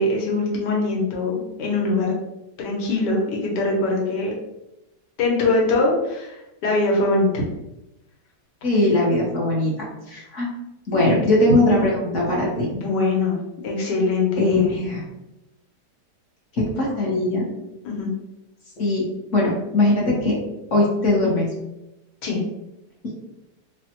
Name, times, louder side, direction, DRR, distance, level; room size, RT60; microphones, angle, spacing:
voice 1, 0.0-2.1 2.6-4.3 5.2-7.4 10.9-11.1 12.7-13.4 13.6-14.7 17.8-18.1 22.2-22.4, left 3 dB, 85° left, -2 dB, 1.4 m, -22 dB
voice 2, 8.6-10.5 10.9-12.7 14.4-15.0 16.5-17.4 18.8-19.0 19.3-20.4 20.7-21.5, left 2 dB, 55° left, -4 dB, 1.0 m, -20 dB
3.2 x 2.1 x 2.8 m, 0.93 s
omnidirectional pair, 1.8 m